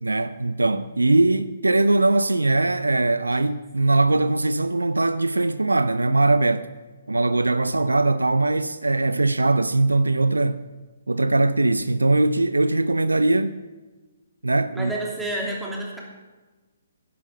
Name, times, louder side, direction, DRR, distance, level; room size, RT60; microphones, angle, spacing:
voice 1, 0.0-6.7 7.1-10.6 11.1-13.6 14.4-14.9, right 2 dB, 85° right, 0.5 m, -21 dB
voice 2, 14.7-16.0, right 1 dB, 5° right, 3.0 m, -29 dB
11.0 x 11.0 x 6.9 m
figure-of-eight pair, 130°, 0 cm